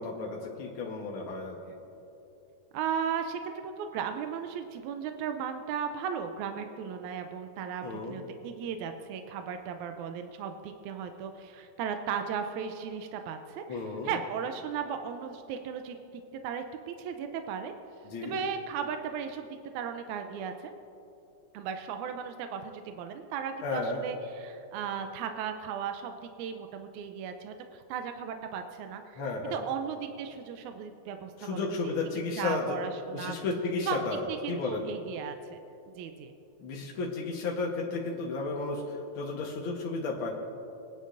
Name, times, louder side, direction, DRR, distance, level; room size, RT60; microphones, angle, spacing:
voice 1, 0.0-1.6 7.8-8.2 13.7-14.1 18.0-18.4 23.6-24.0 29.2-29.6 31.4-32.7 33.1-34.8 36.6-40.3, left 3 dB, 65° left, -2 dB, 1.3 m, -33 dB
voice 2, 2.7-17.7 18.2-19.5 19.7-20.7 21.5-31.9 32.4-33.4 33.8-34.0 34.3-35.6 36.0-36.3, right 7 dB, 80° right, 6 dB, 1.7 m, -36 dB
22.5 x 10.5 x 2.6 m, 2.8 s
omnidirectional pair, 3.9 m